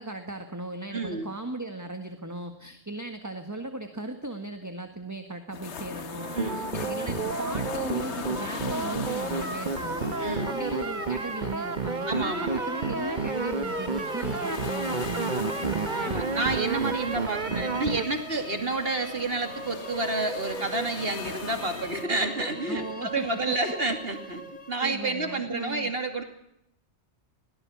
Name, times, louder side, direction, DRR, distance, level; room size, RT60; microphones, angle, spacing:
voice 1, 0.0-16.2 22.7-23.5 24.8-25.9, right 2 dB, 15° right, 6 dB, 1.7 m, -37 dB
voice 2, 0.9-1.3 6.3-6.7 10.2-10.5 12.1-12.6 15.8-26.2, right 2 dB, 60° right, 6 dB, 2.8 m, -30 dB
sound 1, 5.5-22.0, left 6 dB, 90° left, 1.4 m, -40 dB
sound 2, 6.2-18.0, right 5 dB, 45° right, 1.2 m, -31 dB
sound 3, 10.0-25.1, left 1 dB, 45° left, 3.3 m, -39 dB
22.5 x 17.5 x 7.2 m, 0.77 s
omnidirectional pair, 1.1 m